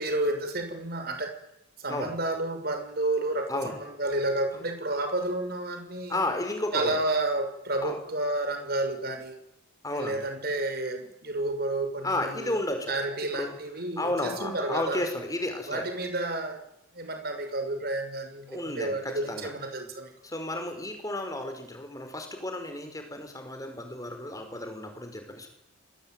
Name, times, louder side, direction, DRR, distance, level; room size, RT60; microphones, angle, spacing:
voice 1, 0.0-1.3 1.8-6.2 6.7-9.4 9.9-12.6 12.9-15.0 15.7-16.6 16.9-20.1, right 2 dB, 50° right, 6 dB, 6.2 m, -31 dB
voice 2, 6.1-7.0 7.8-8.0 9.8-10.2 12.0-12.9 13.3-13.5 14.0-15.9 18.5-19.5 20.2-25.5, left 1 dB, 15° left, 5 dB, 5.5 m, -32 dB
27.0 x 21.5 x 9.4 m, 0.81 s
head